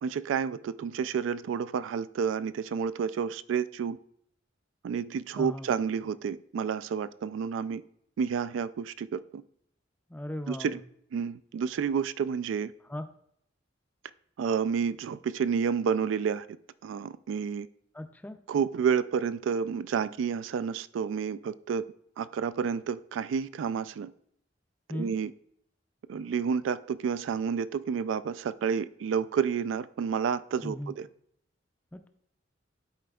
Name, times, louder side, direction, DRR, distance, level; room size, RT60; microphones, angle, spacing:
voice 1, 0.0-4.0 4.8-7.8 8.2-9.4 10.5-10.8 11.1-12.7 14.4-16.5 16.8-17.7 18.5-21.8 22.2-24.1 24.9-25.3 26.1-31.1, right 6 dB, 80° right, 0.3 m, -30 dB
voice 2, 5.4-5.7 10.1-10.8 12.9-13.0 17.9-18.4 24.9-25.2 30.6-30.9 31.9-32.1, left 1 dB, 10° left, 0.4 m, -37 dB
11.0 x 4.1 x 2.3 m
head